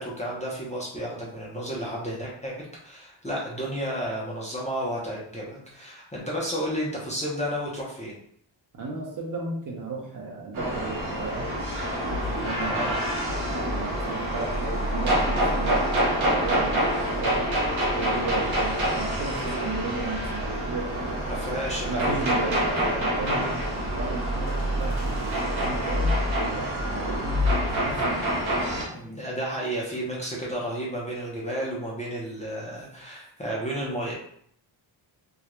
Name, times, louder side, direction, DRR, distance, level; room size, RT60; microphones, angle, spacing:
voice 1, 0.0-8.1 12.6-13.0 21.3-22.3 23.3-23.5 28.9-34.1, equal, 15° left, -5 dB, 0.4 m, -32 dB
voice 2, 8.7-11.5 12.2-12.9 13.2-17.5 18.0-20.9 21.9-28.4, right 3 dB, 45° right, 0 dB, 0.6 m, -35 dB
sound 1, 10.5-28.8, equal, 75° right, 0.9 m, -26 dB
2.3 x 2.1 x 2.9 m, 0.66 s
wide cardioid pair, 155°, 47 cm